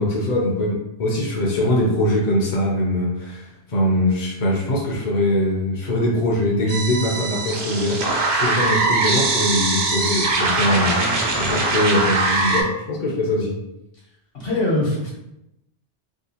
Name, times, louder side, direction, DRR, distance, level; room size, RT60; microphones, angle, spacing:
voice 1, 0.0-11.0 11.4-13.6, left 1 dB, 45° left, -3 dB, 0.7 m, -22 dB
sound 1, 6.7-12.6, right 3 dB, 60° right, 0.8 m, -22 dB
voice 2, 10.6-11.3 14.3-15.1, left 1 dB, 60° left, -4 dB, 1.2 m, -25 dB
3.6 x 2.3 x 2.8 m, 0.85 s
omnidirectional pair, 1.1 m